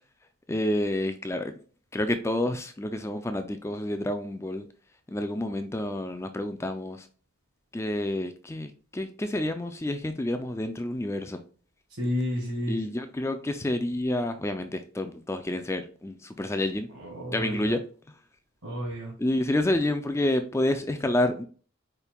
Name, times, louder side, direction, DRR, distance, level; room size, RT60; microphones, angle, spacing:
voice 1, 0.5-1.5 1.9-4.7 5.1-7.1 7.7-11.4 12.7-16.9 17.3-17.8 19.2-21.4, left 1 dB, 10° left, 8 dB, 0.3 m, -29 dB
voice 2, 12.0-12.8 16.9-17.7 18.6-19.1, left 1 dB, 75° right, -5 dB, 1.6 m, -31 dB
5.2 x 4.5 x 2.3 m, 0.40 s
head